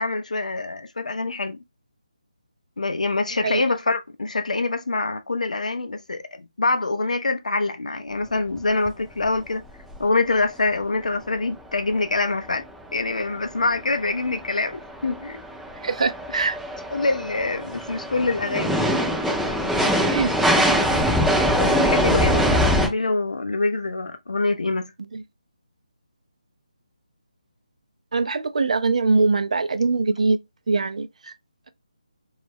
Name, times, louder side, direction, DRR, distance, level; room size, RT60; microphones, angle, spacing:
voice 1, 0.0-1.6 2.8-9.6 10.0-12.6 12.9-15.4 16.9-19.0 21.6-24.9, left 3 dB, 80° left, 0.4 m, -25 dB
sound 1, 8.6-8.7 8.9-9.0 9.2-9.4 9.9-10.0 13.0-13.1 13.7-22.9, equal, ahead, 0.5 m, -22 dB
voice 2, 15.8-16.6 20.1-20.3 25.1-25.2 28.1-30.4 30.7-31.1, right 3 dB, 65° right, 0.4 m, -22 dB
2.3 x 2.0 x 3.3 m
figure-of-eight pair, 160°, 4 cm